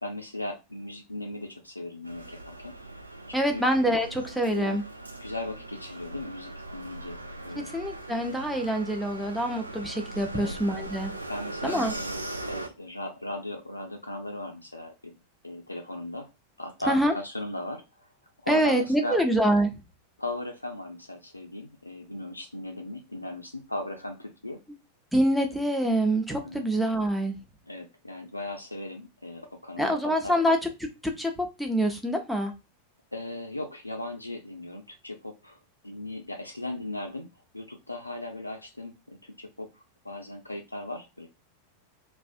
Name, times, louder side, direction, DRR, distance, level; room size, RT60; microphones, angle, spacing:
voice 1, 0.0-2.7 3.3-3.6 4.4-4.8 5.2-7.2 7.4-7.7 10.3-10.5 11.3-15.2 15.4-16.3 16.6-18.1 18.4-19.2 20.2-24.6 26.4-26.7 27.7-30.4 33.1-35.6 35.8-39.7 40.0-41.3, left 1 dB, 85° left, 0.3 m, -37 dB
sound 1, 2.0-12.7, right 2 dB, 80° right, 0.3 m, -40 dB
voice 2, 3.3-4.8 7.5-11.1 11.6-11.9 16.9-17.1 18.5-19.7 24.7-24.8 25.1-27.4 29.8-32.5, right 1 dB, ahead, 0.5 m, -26 dB
2.5 x 2.1 x 2.4 m
figure-of-eight pair, 90°, 0 cm